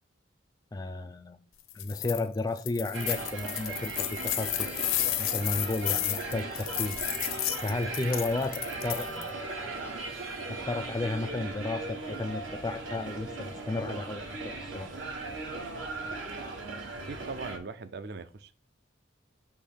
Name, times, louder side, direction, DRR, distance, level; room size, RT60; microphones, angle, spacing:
voice 1, 0.7-1.4 1.7-7.0 7.6-9.6 10.5-14.9, left 2 dB, 20° left, 0.3 m, -33 dB
sound 1, 1.7-2.2 2.6-9.3, left 14 dB, 85° left, 0.6 m, -32 dB
sound 2, 2.9-17.6, right 3 dB, 75° right, 1.3 m, -38 dB
voice 2, 17.0-18.5, right 4 dB, 55° right, 0.5 m, -40 dB
6.5 x 2.9 x 5.6 m
head